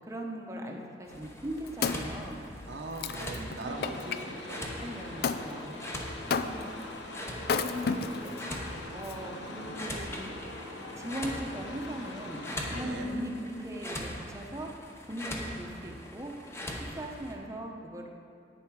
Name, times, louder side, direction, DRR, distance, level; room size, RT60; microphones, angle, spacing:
voice 1, 0.1-2.4 3.6-4.0 4.8-5.7 6.3-6.7 7.5-8.3 8.9-10.3 11.0-12.4 12.7-14.7 15.1-16.3 16.8-18.1, right 1 dB, 15° right, 1 dB, 0.9 m, -39 dB
sound 1, 1.1-17.3, left 1 dB, 15° left, 0.9 m, -42 dB
Wood, 1.2-4.2 5.2-5.5 6.3-6.8 7.4-8.4 9.0-9.1, left 5 dB, 60° left, 0.4 m, -32 dB
voice 2, 2.7-4.7 12.7-13.1, right 2 dB, 75° right, 1 dB, 0.9 m, -40 dB
sound 2, 3.6-12.8, left 2 dB, 90° left, 1.1 m, -43 dB
10.5 x 8.9 x 4.8 m, 2.4 s
head